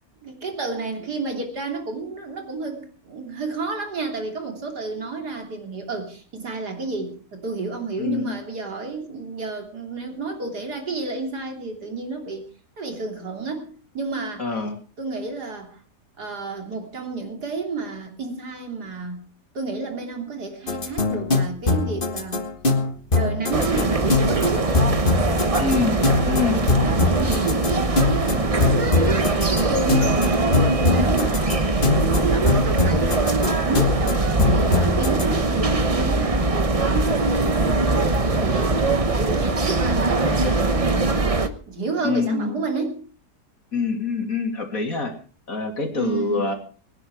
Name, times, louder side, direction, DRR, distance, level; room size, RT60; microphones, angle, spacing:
voice 1, 0.2-12.4 12.8-14.5 15.0-15.8 16.2-19.2 19.5-22.4 23.1-24.9 26.5-37.5 37.8-41.2 41.7-43.0 45.9-46.5, right 3 dB, 75° right, 3 dB, 3.6 m, -31 dB
voice 2, 8.0-8.3 14.4-14.7 25.6-26.0 26.3-26.6 42.0-42.6 43.7-45.1 45.5-46.5, left 4 dB, 55° left, 4 dB, 3.4 m, -25 dB
sound 1, 20.7-35.3, left 3 dB, 35° left, 1.8 m, -23 dB
sound 2, 23.5-41.5, right 3 dB, 25° right, 1.0 m, -21 dB
23.5 x 10.5 x 4.8 m, 0.40 s
omnidirectional pair, 1.7 m